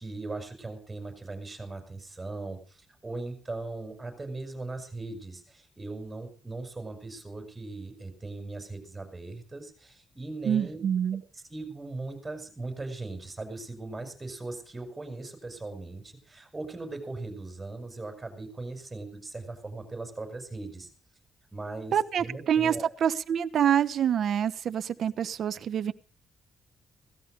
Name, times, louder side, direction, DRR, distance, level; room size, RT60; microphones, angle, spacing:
voice 1, 0.0-10.8 11.5-20.9 21.5-22.9, right 2 dB, 15° right, 5 dB, 7.0 m, -39 dB
voice 2, 10.4-11.2 21.9-22.7 23.0-25.9, right 9 dB, 60° right, 10 dB, 1.0 m, -26 dB
18.0 x 13.5 x 5.3 m, 0.38 s
cardioid pair, 110°, 0 cm